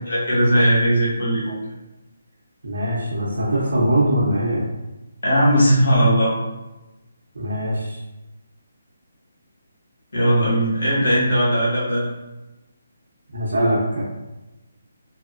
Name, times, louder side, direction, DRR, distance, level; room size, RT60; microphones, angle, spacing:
voice 1, 0.1-1.6 5.2-6.3 10.1-12.1, equal, 75° left, -6 dB, 1.2 m, -18 dB
voice 2, 2.6-4.6 7.3-8.0 13.3-14.0, right 1 dB, 75° right, -6 dB, 0.6 m, -22 dB
2.8 x 2.0 x 2.3 m, 1.0 s
hypercardioid pair, 160°, 0 cm